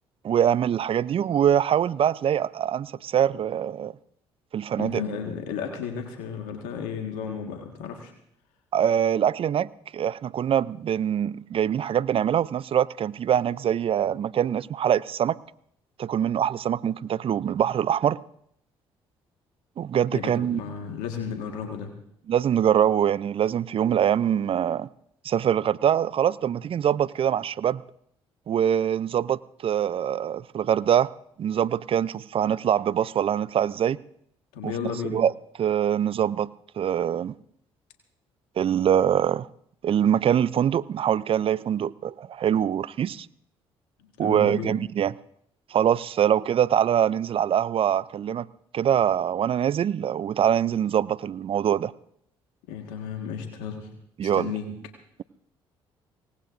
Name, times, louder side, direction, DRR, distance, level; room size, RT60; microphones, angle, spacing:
voice 1, 0.2-3.9 4.5-5.0 8.7-15.4 16.0-18.2 19.8-20.6 22.3-24.9 25.2-27.8 28.5-31.1 31.4-34.0 34.6-34.7 35.0-35.3 35.6-36.5 36.8-37.3 38.6-39.5 39.8-43.3 44.2-45.1 45.7-48.5 48.7-51.9 54.2-54.5, right 9 dB, 45° right, 0.5 m, -24 dB
voice 2, 4.8-8.1 20.1-21.9 34.5-35.2 44.0-44.8 52.7-53.9 54.2-54.7, left 7 dB, 75° left, 1.7 m, -33 dB
24.0 x 18.5 x 2.6 m
hypercardioid pair, 50°, 13 cm